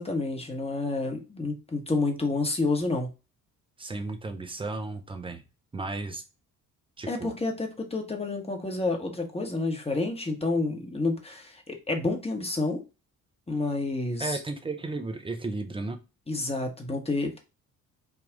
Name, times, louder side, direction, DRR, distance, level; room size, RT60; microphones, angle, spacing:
voice 1, 0.0-3.1 7.1-12.8 13.5-14.4 16.3-17.4, left 3 dB, 10° left, 2 dB, 0.9 m, -29 dB
voice 2, 3.8-5.4 5.7-6.2 7.0-7.3 14.2-16.0, right 3 dB, 10° right, 6 dB, 0.5 m, -34 dB
3.6 x 2.3 x 3.6 m, 0.30 s
figure-of-eight pair, 45°, 49 cm